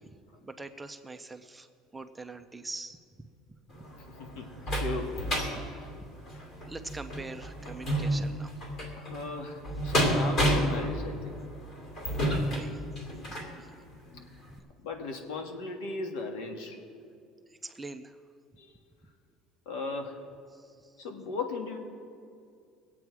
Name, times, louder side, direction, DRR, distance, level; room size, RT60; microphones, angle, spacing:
voice 1, 0.4-1.7 1.9-3.3 4.4-4.7 5.5-6.1 6.6-8.5 12.3-12.8 13.6-13.7 14.3-14.6 17.6-18.2 20.5-20.9, right 2 dB, 10° right, 8 dB, 0.5 m, -43 dB
sound 1, 3.7-13.5 14.1-14.2 14.6-14.7, equal, 40° left, 2.6 m, -31 dB
voice 2, 4.2-5.2 5.6-5.7 6.3-6.5 8.9-11.3 14.8-16.8 18.6-18.7 19.6-20.2 21.0-21.8, left 3 dB, 85° left, 4 dB, 1.7 m, -37 dB
21.0 x 8.5 x 4.7 m, 2.3 s
cardioid pair, 150°, 0 cm